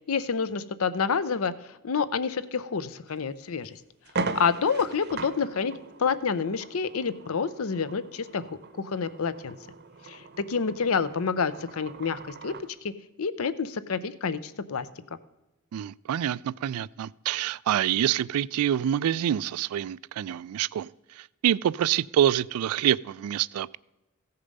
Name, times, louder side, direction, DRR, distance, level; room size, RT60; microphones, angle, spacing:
voice 1, 0.1-1.5 1.8-3.8 4.3-5.7 6.0-9.6 10.1-12.5 12.8-12.9 13.2-14.9, left 5 dB, 70° left, 0.6 m, -28 dB
sound 1, 3.1-3.2 3.6-3.7 4.0-12.7, right 3 dB, 50° right, 0.8 m, -39 dB
voice 2, 15.7-23.8, right 10 dB, 80° right, 0.3 m, -26 dB
15.5 x 6.7 x 5.3 m
head